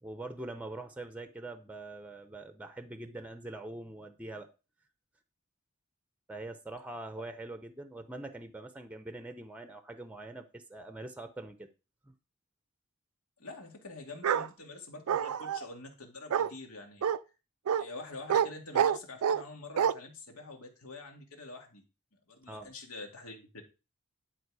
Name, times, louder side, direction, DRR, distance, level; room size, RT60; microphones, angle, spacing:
voice 1, 0.0-4.5 6.3-11.7 12.1-12.2 22.5-22.7, right 2 dB, 5° right, 9 dB, 0.7 m, -43 dB
voice 2, 13.4-17.1 17.7-21.8 22.3-23.6, left 3 dB, 80° left, 3 dB, 2.2 m, -46 dB
Bark, 14.2-14.5 15.1-15.6 16.3-16.5 17.0-17.2 17.7-17.8 18.3-18.5 18.7-19.4 19.8-19.9, right 8 dB, 80° right, 0.4 m, -27 dB
11.0 x 4.4 x 4.8 m, 0.30 s
head